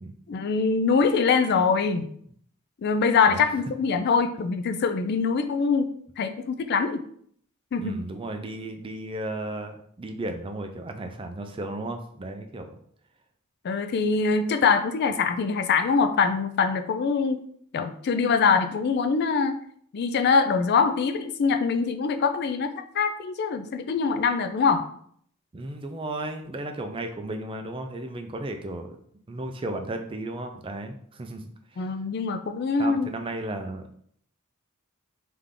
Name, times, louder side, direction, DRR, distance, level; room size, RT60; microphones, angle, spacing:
voice 1, 0.3-2.1 2.8-7.0 7.7-8.0 13.6-17.4 17.7-19.6 19.9-24.8 31.8-33.1, left 5 dB, 50° left, 8 dB, 0.3 m, -23 dB
voice 2, 3.3-3.6 7.8-12.7 25.5-29.0 29.3-32.0 32.8-33.9, right 2 dB, 25° right, 5 dB, 0.4 m, -34 dB
3.7 x 3.3 x 3.6 m, 0.63 s
head